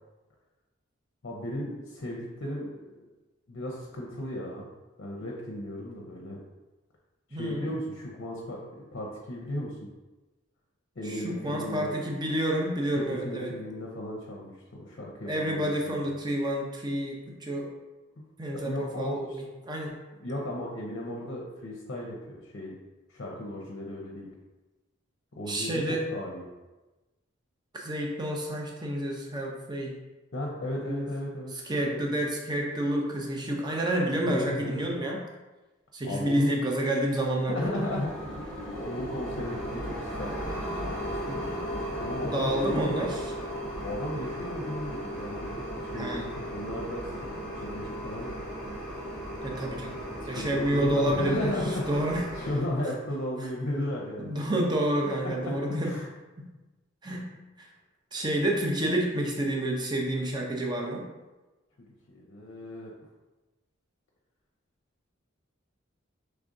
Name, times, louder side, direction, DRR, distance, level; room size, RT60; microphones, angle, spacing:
voice 1, 1.2-3.1 3.5-4.7 5.0-6.4 7.3-8.6 8.9-9.9 11.0-12.0 13.1-14.5 14.8-16.0 18.5-19.4 20.2-22.7 23.1-24.3 25.4-26.5 30.3-31.5 31.8-32.0 34.3-34.8 36.0-36.6 37.5-38.4 38.8-43.1 43.8-48.4 50.3-54.7 55.2-55.5 55.8-56.1 62.1-62.9, left 1 dB, 60° left, -3 dB, 0.6 m, -35 dB
voice 2, 7.3-7.7 11.0-13.5 15.3-17.7 18.4-20.0 25.4-26.0 27.7-29.9 30.8-31.1 31.6-35.2 35.9-37.7 41.3-41.4 42.2-43.2 45.9-46.3 49.4-50.0 50.3-51.5 51.9-52.2 54.2-56.0 56.4-56.5 57.0-57.3 57.6-57.7 58.1-61.1, right 1 dB, 20° right, -1 dB, 0.6 m, -29 dB
sound 1, 37.6-52.6, equal, 5° left, 0.9 m, -36 dB
4.9 x 3.3 x 2.6 m, 1.1 s
head